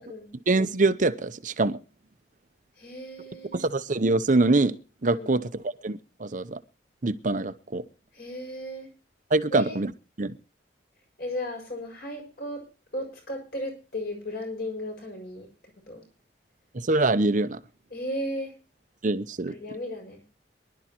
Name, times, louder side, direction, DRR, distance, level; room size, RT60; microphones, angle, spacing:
voice 1, 0.5-1.8 3.5-4.8 5.0-6.6 7.0-7.8 9.3-9.9 10.2-10.3 16.7-17.6 19.0-19.5, right 2 dB, 45° right, 0.8 m, -24 dB
voice 2, 2.8-3.7 5.1-5.4 8.1-8.9 9.5-9.8 11.2-12.6 12.9-15.5 15.9-16.0 17.9-18.5 19.5-20.2, left 1 dB, 60° left, 6.5 m, -35 dB
24.0 x 11.5 x 3.0 m
head